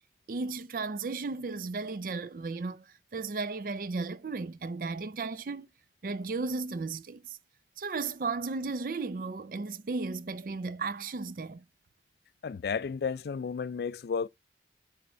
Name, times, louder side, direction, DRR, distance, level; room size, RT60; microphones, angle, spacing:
voice 1, 0.3-2.8 3.1-5.7 6.0-7.4 7.8-11.6, right 3 dB, 50° right, 0.4 m, -35 dB
voice 2, 12.4-14.3, left 6 dB, 60° left, 0.3 m, -32 dB
8.0 x 3.5 x 4.3 m
head